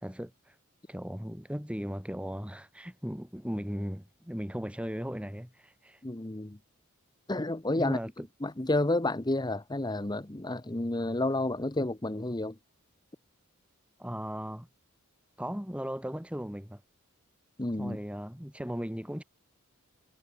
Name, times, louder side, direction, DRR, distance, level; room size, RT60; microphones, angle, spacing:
voice 1, 0.0-0.6 0.9-6.0 7.8-8.3 14.0-14.7 15.4-16.8 17.8-19.2, equal, 5° right, 2.3 m, -37 dB
voice 2, 6.0-6.6 7.3-8.0 8.4-12.6 17.6-18.0, left 2 dB, 20° left, 0.9 m, -30 dB
head